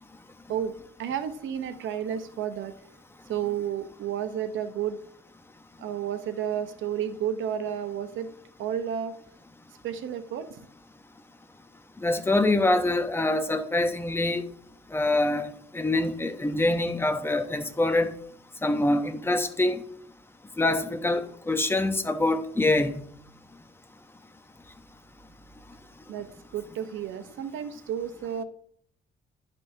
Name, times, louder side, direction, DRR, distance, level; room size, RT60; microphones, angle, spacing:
voice 1, 0.5-2.7 3.3-5.0 5.8-8.3 8.6-9.1 9.8-10.5 26.1-28.4, right 9 dB, 75° right, 0.8 m, -31 dB
voice 2, 12.0-14.4 14.9-15.5 15.7-18.1 18.6-19.8 20.6-23.0, left 2 dB, 10° left, 0.8 m, -25 dB
11.5 x 5.4 x 2.7 m
cardioid pair, 90°, 20 cm